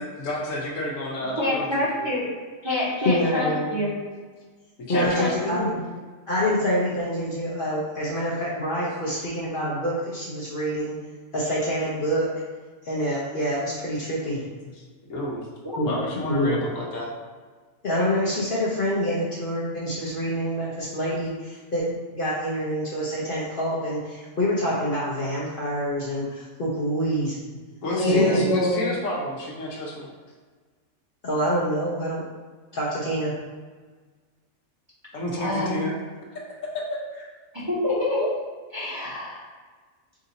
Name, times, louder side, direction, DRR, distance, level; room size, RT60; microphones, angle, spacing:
voice 1, 0.0-2.1 4.8-5.6 9.1-9.2 14.7-14.8 15.1-15.5 15.8-17.1 27.8-30.1 35.1-35.9 36.5-36.8 37.1-37.3, left 1 dB, 75° left, -3 dB, 1.2 m, -30 dB
voice 2, 1.4-2.2 2.6-3.9 4.9-5.6 15.6-15.8 27.9-28.8 35.4-35.7 37.5-38.3 38.7-39.4, left 1 dB, 20° right, -9 dB, 1.1 m, -26 dB
voice 3, 3.0-3.7 4.9-5.8 6.3-11.0 11.3-12.3 12.8-14.4 15.8-16.0 16.2-16.6 17.8-27.4 28.1-28.5 31.2-32.2 32.7-33.3, equal, 50° left, -7 dB, 0.8 m, -26 dB
3.7 x 2.6 x 4.0 m, 1.4 s
omnidirectional pair, 1.4 m